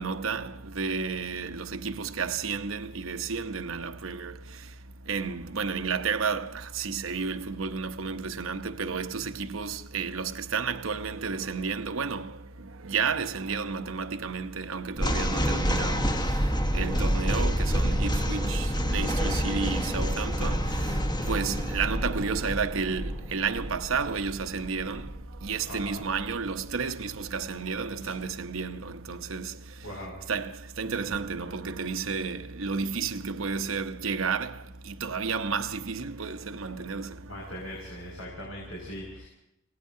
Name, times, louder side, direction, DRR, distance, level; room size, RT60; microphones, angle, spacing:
voice 1, 0.0-4.3 5.1-6.5 6.7-12.3 12.8-16.1 16.7-20.6 21.3-25.0 25.4-29.5 30.3-30.5 30.8-34.5 34.9-37.1, right 5 dB, 75° right, 0.9 m, -31 dB
sound 1, 15.0-26.3, equal, 20° left, 1.3 m, -28 dB
voice 2, 25.7-26.0 28.0-28.1 29.8-30.1 37.3-39.3, left 1 dB, 90° left, 5.8 m, -41 dB
29.0 x 18.0 x 2.7 m
head